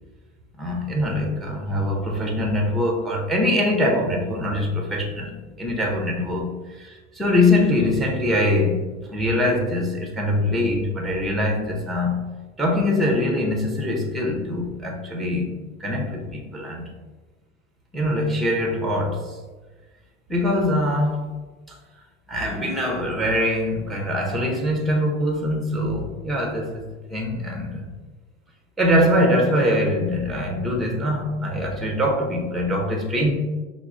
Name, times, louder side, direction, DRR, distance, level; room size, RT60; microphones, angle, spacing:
voice 1, 0.6-12.2 12.6-16.9 17.9-19.4 20.3-21.3 21.7-21.8 22.3-26.8 27.1-27.9 28.8-33.3, left 1 dB, ahead, 1 dB, 0.5 m, -23 dB
5.7 x 2.0 x 2.5 m, 1.3 s
supercardioid pair, 100°, 36 cm